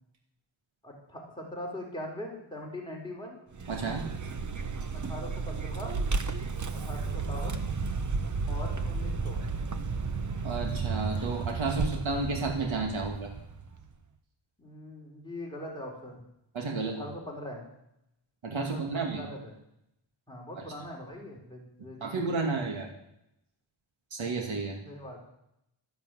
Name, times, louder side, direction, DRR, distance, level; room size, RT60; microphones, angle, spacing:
voice 1, 0.8-3.4 4.9-6.0 6.7-7.6 8.5-9.4 14.6-16.2 16.8-17.7 18.7-19.5 20.3-22.3 24.8-25.2, left 1 dB, 10° left, -2 dB, 4.0 m, -41 dB
Vehicle, 3.5-13.9, right 4 dB, 40° right, 1.0 m, -33 dB
voice 2, 3.7-4.1 10.4-13.3 16.5-17.1 18.4-19.2 22.0-22.9 24.1-24.8, right 3 dB, 75° right, 1 dB, 2.5 m, -31 dB
13.0 x 11.0 x 7.7 m, 0.80 s
wide cardioid pair, 140°, 48 cm